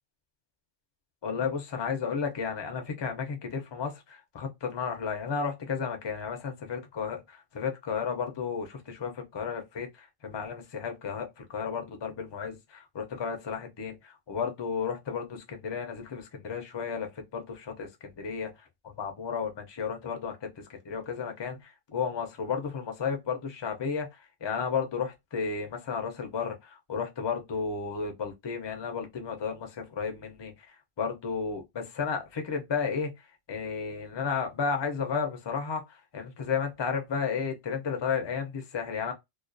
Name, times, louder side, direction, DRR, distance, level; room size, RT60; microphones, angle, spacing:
voice 1, 1.2-39.1, left 6 dB, 40° left, 0.4 m, -33 dB
2.3 x 2.3 x 2.4 m
omnidirectional pair, 1.2 m